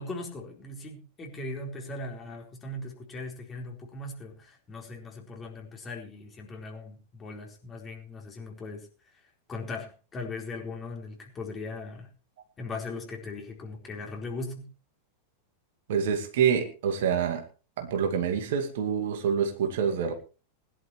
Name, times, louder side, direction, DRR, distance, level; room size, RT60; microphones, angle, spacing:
voice 1, 0.0-8.9 9.5-12.1 12.6-14.7, left 2 dB, 20° left, 1 dB, 4.3 m, -39 dB
voice 2, 15.9-17.4 17.8-20.1, right 7 dB, 55° right, 5 dB, 2.2 m, -26 dB
21.5 x 11.5 x 3.2 m, 0.33 s
figure-of-eight pair, 90°, 0 cm